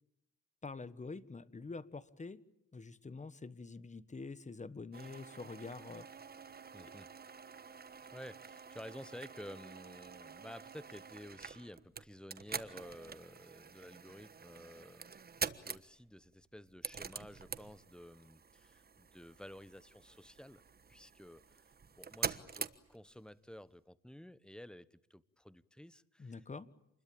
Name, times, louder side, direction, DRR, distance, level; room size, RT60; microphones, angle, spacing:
voice 1, 0.6-2.4 2.7-6.1 26.2-26.7, left 4 dB, 25° left, 16 dB, 1.5 m, -46 dB
sound 1, 4.9-23.3, right 5 dB, 30° right, 1.3 m, -46 dB
voice 2, 6.7-7.1 8.1-15.1 15.4-20.6 20.9-26.4, left 1 dB, 5° left, 17 dB, 1.1 m, -52 dB
28.0 x 21.5 x 8.8 m, 0.78 s
cardioid pair, 90°, 30 cm